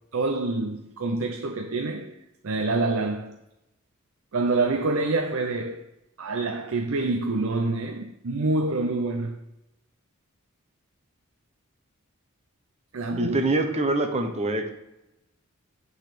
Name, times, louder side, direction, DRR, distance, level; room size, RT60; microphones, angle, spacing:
voice 1, 0.1-2.2 2.4-3.3 4.3-5.8 6.2-9.4 12.9-13.4, right 3 dB, 70° right, 0.6 m, -26 dB
voice 2, 13.2-14.8, right 2 dB, 30° right, 1.0 m, -25 dB
9.1 x 4.1 x 6.8 m
head